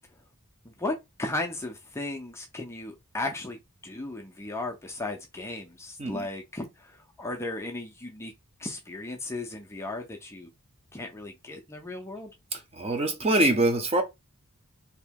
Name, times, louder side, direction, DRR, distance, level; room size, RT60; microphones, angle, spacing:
voice 1, 0.8-3.6 3.8-6.9 7.2-8.3 8.6-10.5 10.9-12.3, left 2 dB, 10° left, 0.5 m, -35 dB
voice 2, 12.5-14.0, right 1 dB, 30° right, 0.8 m, -24 dB
2.9 x 2.7 x 3.5 m
head